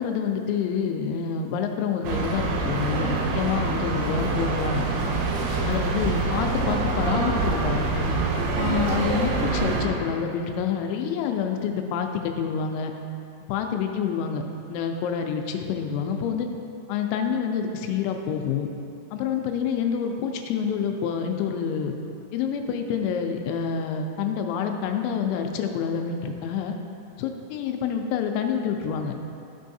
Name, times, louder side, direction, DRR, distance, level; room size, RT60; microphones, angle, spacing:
voice 1, 0.0-5.1 5.7-8.1 8.6-12.9 13.5-14.4 14.7-16.5 16.9-18.7 19.1-21.9 22.3-26.8 27.2-29.1, left 7 dB, 85° left, 4 dB, 2.8 m, -27 dB
sound 1, 2.0-9.9, right 3 dB, 85° right, 3.0 m, -25 dB
12.5 x 5.5 x 2.6 m, 2.6 s
omnidirectional pair, 5.4 m